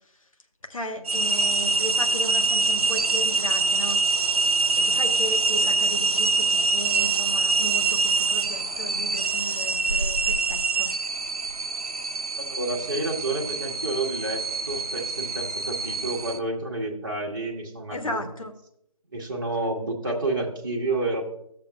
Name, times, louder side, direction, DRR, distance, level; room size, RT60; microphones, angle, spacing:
voice 1, 0.7-4.0 4.8-10.9 17.9-18.5, left 1 dB, 60° left, 5 dB, 1.0 m, -35 dB
sound 1, 1.0-16.4, right 4 dB, 75° right, 0.5 m, -25 dB
voice 2, 12.4-14.4 14.7-18.2 19.1-21.2, right 2 dB, 35° right, 0 dB, 1.0 m, -29 dB
13.5 x 7.0 x 2.3 m, 0.72 s
figure-of-eight pair, 160°, 20 cm